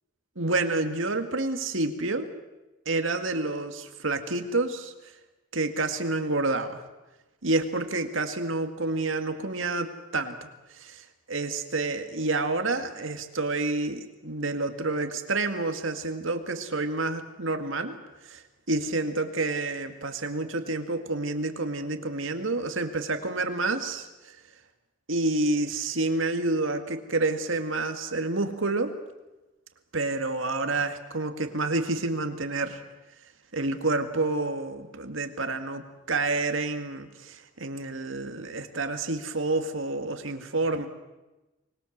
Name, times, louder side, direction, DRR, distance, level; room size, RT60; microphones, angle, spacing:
voice 1, 0.4-2.3 2.9-4.9 5.5-6.8 7.4-18.0 18.2-18.4 18.7-24.1 25.1-28.9 29.9-32.8 33.5-40.9, right 2 dB, 75° right, 7 dB, 2.2 m, -29 dB
24.5 x 21.0 x 7.4 m, 1.1 s
head